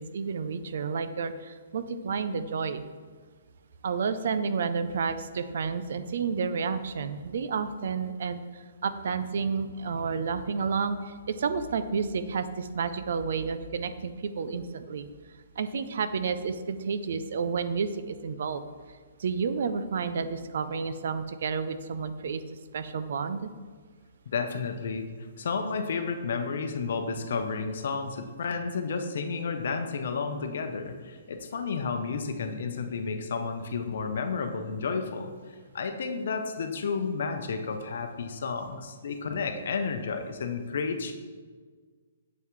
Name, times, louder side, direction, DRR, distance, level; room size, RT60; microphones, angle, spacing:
voice 1, 0.0-2.8 3.8-15.1 15.6-18.6 19.2-22.4 22.7-23.5, right 5 dB, 65° right, 12 dB, 0.4 m, -30 dB
voice 2, 24.3-25.1 25.4-35.3 35.7-41.1, left 5 dB, 65° left, 7 dB, 0.7 m, -31 dB
7.2 x 5.7 x 3.1 m, 1.5 s
hypercardioid pair, 160°, 0 cm